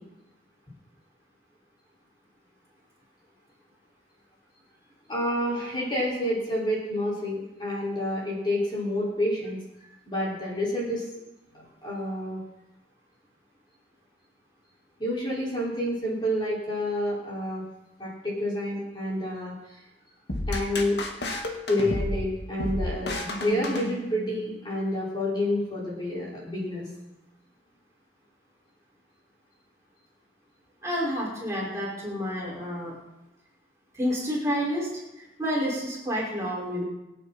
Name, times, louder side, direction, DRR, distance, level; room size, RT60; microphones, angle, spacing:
voice 1, 5.1-9.6 10.1-11.1 11.5-12.4 15.0-17.6 18.0-19.8 20.5-21.0 21.7-26.8, left 1 dB, 25° left, -6 dB, 5.4 m, -29 dB
sound 1, 20.3-24.5, left 1 dB, 70° left, 2.1 m, -32 dB
voice 2, 30.8-32.9 33.9-34.9 35.4-36.8, equal, 15° right, -5 dB, 5.6 m, -29 dB
26.0 x 9.2 x 4.4 m, 0.97 s
head